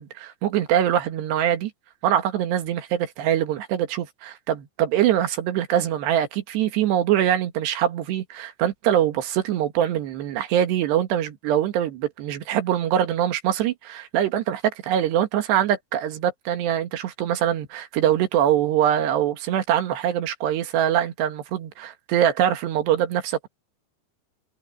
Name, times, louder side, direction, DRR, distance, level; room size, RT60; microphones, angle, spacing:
voice 1, 0.0-1.7 2.0-23.5, right 10 dB, 85° right, 3.9 m, -23 dB
omnidirectional pair, 4.8 m